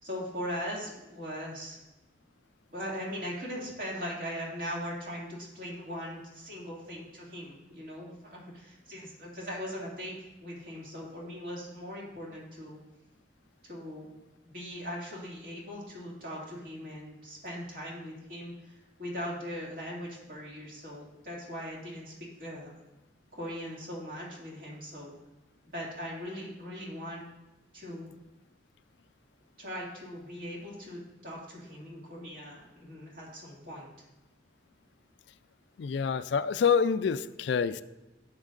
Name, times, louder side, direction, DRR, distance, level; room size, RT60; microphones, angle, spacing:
voice 1, 0.0-1.8 2.7-12.8 13.6-14.1 14.4-22.7 23.3-25.1 25.7-27.3 27.7-28.1 29.6-33.9, equal, 45° right, 2.4 m, -40 dB
voice 2, 35.8-37.8, left 6 dB, 70° left, 0.3 m, -27 dB
12.0 x 8.1 x 2.5 m
head